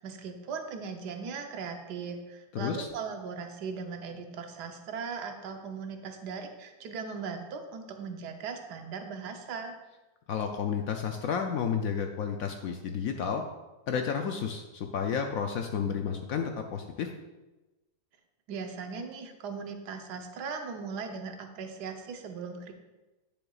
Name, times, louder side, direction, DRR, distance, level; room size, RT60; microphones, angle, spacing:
voice 1, 0.0-9.8 18.5-22.7, right 5 dB, 70° right, 5 dB, 1.3 m, -38 dB
voice 2, 2.5-2.9 10.3-13.4 13.9-17.1, left 7 dB, 75° left, 4 dB, 0.8 m, -31 dB
10.0 x 7.0 x 2.4 m, 1.1 s
omnidirectional pair, 1.9 m